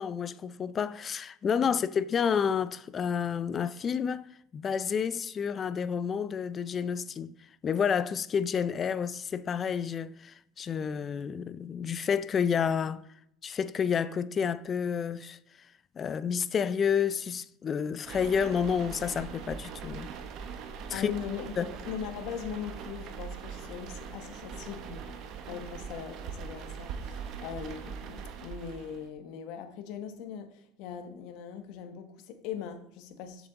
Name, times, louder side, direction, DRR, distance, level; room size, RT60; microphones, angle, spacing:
voice 1, 0.0-4.3 4.5-7.3 7.6-13.0 13.4-15.4 16.0-20.1 20.9-21.1 21.6-21.7, left 7 dB, 35° left, 0.4 m, -30 dB
sound 1, 18.0-29.1, right 6 dB, 55° right, 1.1 m, -41 dB
voice 2, 20.9-33.5, left 8 dB, 65° left, 1.1 m, -40 dB
7.0 x 6.7 x 3.9 m
supercardioid pair, 95°, 0 cm